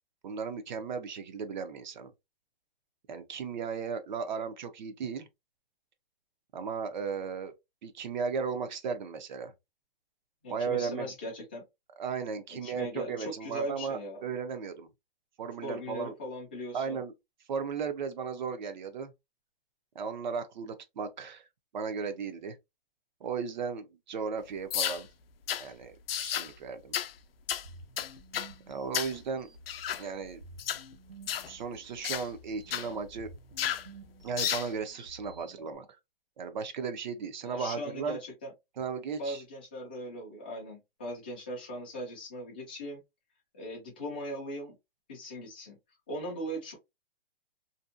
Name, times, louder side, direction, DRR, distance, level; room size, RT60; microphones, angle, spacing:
voice 1, 0.2-2.1 3.1-5.3 6.5-7.5 7.8-9.5 10.5-11.1 12.0-14.9 15.4-16.1 16.7-17.1 17.5-19.1 19.9-21.5 21.7-22.6 23.2-25.1 25.6-26.0 26.2-27.0 28.7-29.5 30.0-30.4 31.5-33.3 34.2-35.9 36.4-38.2 38.8-39.4, right 5 dB, 50° right, 0.5 m, -35 dB
voice 2, 10.4-11.6 12.6-14.2 15.6-17.0 37.4-38.5 39.2-43.0 43.5-44.8 45.1-45.8 46.1-46.7, equal, 10° left, 0.3 m, -39 dB
sound 1, 24.7-25.0 25.5-25.7 26.1-26.5 26.9-27.1 27.5-27.7 28.0-28.5 28.9-29.2 29.7-30.0 30.6-30.8 31.3-31.5 32.0-32.3 32.7-32.9 33.6-33.9 34.4-34.7, left 10 dB, 80° left, 0.4 m, -32 dB
sound 2, 27.5-35.7, right 1 dB, 75° right, 1.3 m, -52 dB
2.6 x 2.1 x 2.4 m
hypercardioid pair, 160°, 29 cm